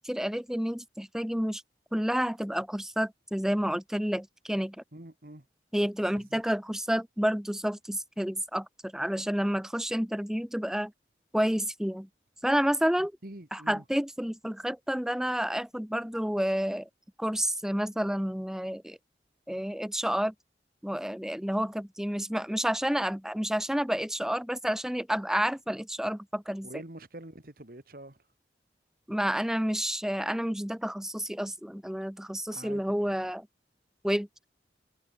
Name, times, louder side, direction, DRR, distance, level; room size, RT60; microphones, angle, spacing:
voice 1, 0.0-1.6 1.9-4.8 5.7-10.9 11.3-12.1 12.4-13.1 13.5-16.9 17.2-19.0 19.5-20.3 20.8-26.7 29.1-33.5 34.0-34.3, equal, 5° right, 0.7 m, -30 dB
voice 2, 4.9-5.5 6.1-6.4 13.2-13.8 26.6-28.2 32.5-33.2, right 1 dB, 55° right, 2.0 m, -46 dB
head